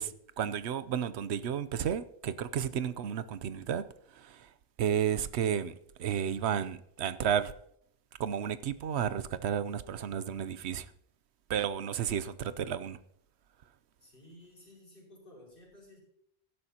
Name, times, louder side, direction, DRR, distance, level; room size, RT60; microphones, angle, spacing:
voice 1, 0.0-3.8 4.1-4.5 4.8-5.7 6.0-7.5 8.2-10.9 11.5-13.0, right 8 dB, 90° right, 0.9 m, -32 dB
voice 2, 14.0-16.0, left 1 dB, 55° left, 5.6 m, -55 dB
16.0 x 12.0 x 2.9 m
omnidirectional pair, 1.1 m